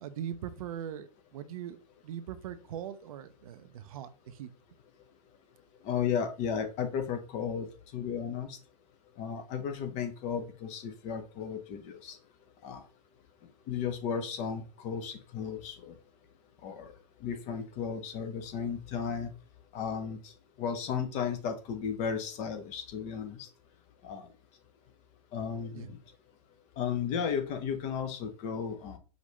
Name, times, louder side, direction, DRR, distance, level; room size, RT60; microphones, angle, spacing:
voice 1, 0.0-1.8 2.0-4.5 25.7-25.9, right 10 dB, 60° right, 11 dB, 0.5 m, -40 dB
voice 2, 5.8-7.7 7.9-8.6 9.2-12.2 12.6-12.8 13.7-16.0 16.6-16.9 17.2-19.3 19.7-23.5 24.0-24.3 25.3-26.0 26.8-29.0, left 7 dB, 35° left, 7 dB, 0.7 m, -34 dB
5.1 x 2.6 x 3.1 m, 0.36 s
hypercardioid pair, 120°, 21 cm